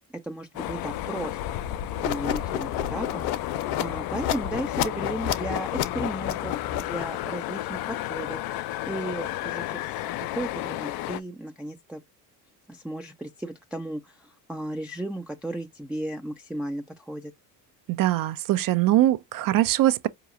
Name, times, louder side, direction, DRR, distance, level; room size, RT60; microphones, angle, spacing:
voice 1, 0.2-1.4 1.6-1.8 2.0-3.5 3.8-12.0 12.7-17.3, right 1 dB, 5° right, 0.4 m, -35 dB
sound 1, 0.5-11.2, left 14 dB, 55° left, 0.5 m, -32 dB
sound 2, 2.0-7.2, left 10 dB, 80° left, 0.7 m, -30 dB
voice 2, 17.9-20.1, right 14 dB, 50° right, 0.6 m, -22 dB
4.7 x 3.0 x 2.4 m
supercardioid pair, 80°, 45 cm